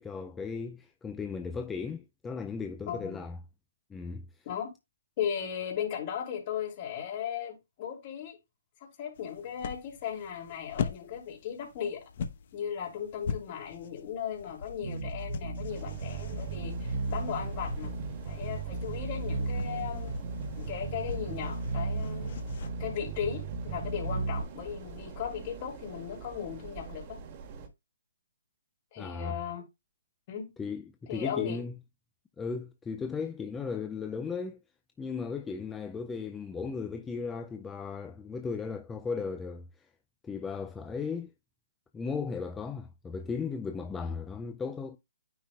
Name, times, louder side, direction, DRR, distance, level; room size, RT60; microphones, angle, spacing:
voice 1, 0.0-3.4 3.9-4.5 29.0-29.4 30.6-31.7 32.4-34.6 35.0-39.9 40.2-41.3 41.9-45.0, left 5 dB, 10° left, 0.4 m, -36 dB
voice 2, 2.9-3.2 4.4-4.7 5.2-8.4 8.8-12.0 12.5-17.9 18.2-20.2 20.6-22.4 22.8-27.2 28.9-29.6 30.3-30.5 31.1-31.6, left 8 dB, 35° left, 3.0 m, -37 dB
sound 1, 9.2-22.7, left 6 dB, 50° left, 1.0 m, -42 dB
Bass guitar, 14.8-24.4, right 3 dB, 60° right, 0.9 m, -35 dB
sound 2, 15.7-27.7, right 5 dB, 35° right, 1.4 m, -45 dB
9.4 x 5.0 x 2.4 m
hypercardioid pair, 155°, 0 cm